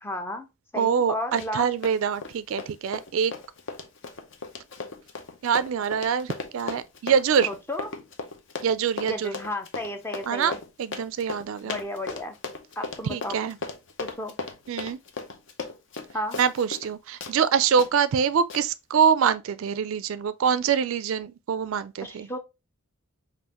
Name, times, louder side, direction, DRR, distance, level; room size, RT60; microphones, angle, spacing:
voice 1, 0.0-0.5 0.7-1.7 7.5-7.9 9.1-10.6 11.6-12.3 12.8-13.4 14.0-14.4 16.1-16.4 22.0-22.4, left 1 dB, 10° left, 0.5 m, -33 dB
voice 2, 0.8-3.3 5.4-7.5 8.6-9.3 10.3-10.5 10.8-11.8 13.1-13.6 14.7-15.0 16.4-22.3, right 7 dB, 65° right, 0.3 m, -24 dB
Run, 1.3-1.6 1.8-16.9 17.2-17.4 17.8-17.9 18.5-18.6, left 4 dB, 55° left, 0.7 m, -36 dB
5.5 x 2.5 x 2.9 m
head